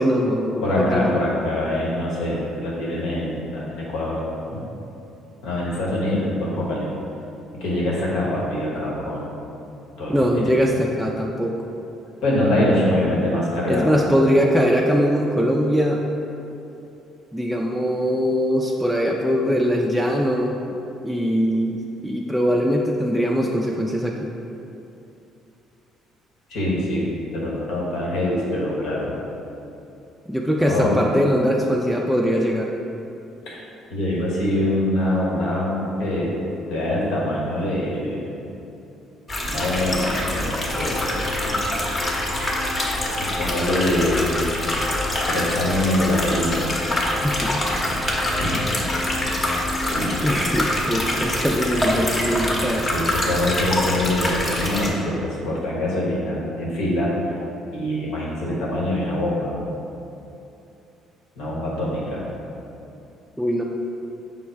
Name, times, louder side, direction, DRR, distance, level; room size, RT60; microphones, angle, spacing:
voice 1, 0.0-1.2 10.1-11.6 13.7-16.0 17.3-20.6 21.0-24.3 30.3-32.7 47.0-47.6 50.2-52.9 63.4-63.6, equal, 5° right, -2 dB, 0.4 m, -21 dB
voice 2, 0.6-4.2 4.5-4.6 5.4-6.9 7.6-9.3 10.0-10.6 12.2-14.1 26.5-29.1 30.6-31.0 33.5-33.6 33.9-36.3 36.7-38.3 39.4-41.6 42.0-42.3 43.1-44.5 45.3-46.7 48.3-48.6 49.9-50.2 52.8-57.3 57.7-59.5 61.4-62.2, left 1 dB, 75° left, -5 dB, 1.1 m, -24 dB
sound 1, 39.3-54.9, left 1 dB, 35° left, 0.8 m, -25 dB
sound 2, 40.7-52.9, left 2 dB, 55° left, 0.5 m, -34 dB
5.6 x 2.1 x 4.6 m, 2.8 s
supercardioid pair, 70°, 0 cm